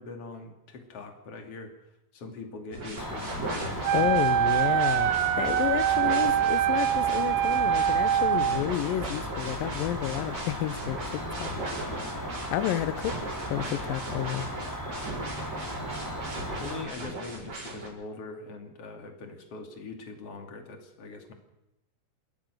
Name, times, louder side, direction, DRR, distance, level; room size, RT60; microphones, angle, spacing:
voice 1, 0.0-1.7 2.1-4.2 15.6-16.0 16.6-21.3, left 3 dB, 45° left, 5 dB, 3.5 m, -42 dB
sound 1, 2.7-17.9, right 2 dB, 50° right, 6.1 m, -38 dB
Cricket, 3.0-16.8, equal, 5° left, 2.7 m, -37 dB
Wind instrument woodwind instrument, 3.8-8.6, right 10 dB, 75° right, 1.6 m, -24 dB
voice 2, 3.9-11.5 12.5-13.2 13.5-14.5, left 13 dB, 90° left, 13 dB, 2.6 m, -30 dB
28.5 x 13.5 x 6.7 m, 0.92 s
omnidirectional pair, 4.0 m